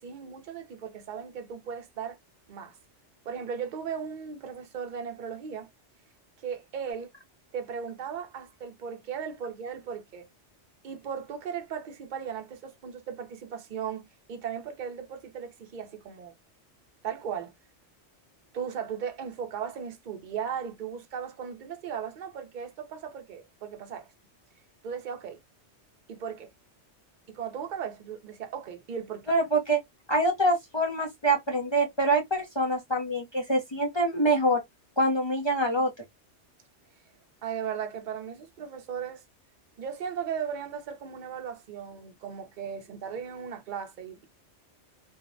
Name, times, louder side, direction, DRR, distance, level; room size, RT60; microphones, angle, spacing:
voice 1, 0.0-2.2 2.5-2.8 3.2-5.7 6.4-7.1 7.5-10.3 10.8-16.3 17.0-17.5 18.5-24.1 24.8-25.4 26.1-26.5 27.3-29.3 37.4-39.2 39.8-44.3, right 7 dB, 50° right, 0.6 m, -37 dB
voice 2, 29.3-29.8 30.1-34.6 35.0-35.9, right 1 dB, 45° left, 0.3 m, -25 dB
2.6 x 2.0 x 2.4 m
omnidirectional pair, 1.2 m